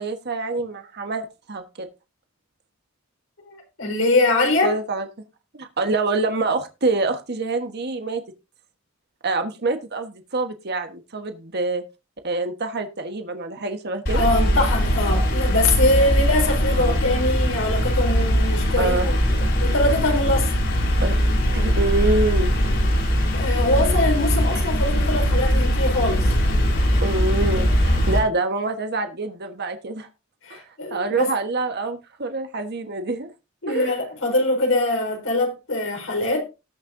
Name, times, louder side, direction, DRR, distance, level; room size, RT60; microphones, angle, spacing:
voice 1, 0.0-1.9 4.6-5.1 5.5-8.2 9.2-11.8 12.2-14.3 16.7-17.0 18.8-19.1 21.0-21.2 21.5-22.5 23.8-24.0 24.5-24.6 27.0-30.1 30.5-30.6 30.9-33.3 33.7-33.9, right 3 dB, 55° right, 1.3 m, -26 dB
voice 2, 3.4-4.8 14.1-20.6 23.3-26.3 30.4-31.3 33.6-36.4, left 2 dB, 80° left, 4.6 m, -23 dB
sound 1, 14.1-28.2, equal, 60° left, 5.3 m, -21 dB
19.0 x 6.6 x 2.7 m
head